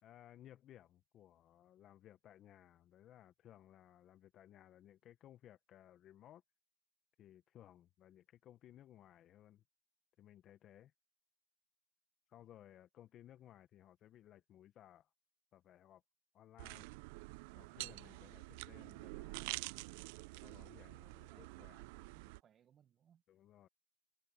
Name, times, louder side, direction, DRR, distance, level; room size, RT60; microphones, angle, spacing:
voice 1, 0.0-6.4 7.2-9.6 10.2-10.9 12.3-15.1 15.5-16.0 16.3-16.9 17.5-19.5 20.4-21.9 23.3-23.7, left 12 dB, 35° left, 1.0 m, -61 dB
sound 1, 16.6-22.4, right 25 dB, 60° right, 0.4 m, -48 dB
voice 2, 20.8-23.2, right 9 dB, 30° right, 0.9 m, -70 dB
supercardioid pair, 125°, 0 cm